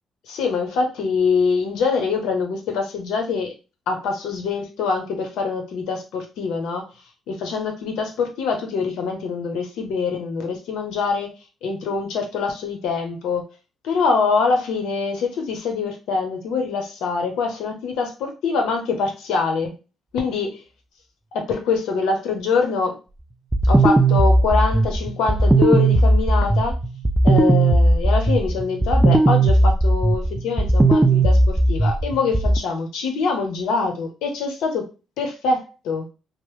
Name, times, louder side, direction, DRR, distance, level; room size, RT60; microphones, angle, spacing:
voice 1, 0.3-3.5 3.9-6.9 7.3-11.3 11.6-13.4 13.8-19.7 20.1-20.6 21.3-23.0 23.6-26.7 27.2-34.9 35.2-36.1, left 4 dB, 85° left, 0.7 m, -24 dB
sound 1, 23.5-32.6, right 2 dB, 15° right, 0.3 m, -17 dB
2.9 x 2.0 x 3.1 m
cardioid pair, 90°, 0 cm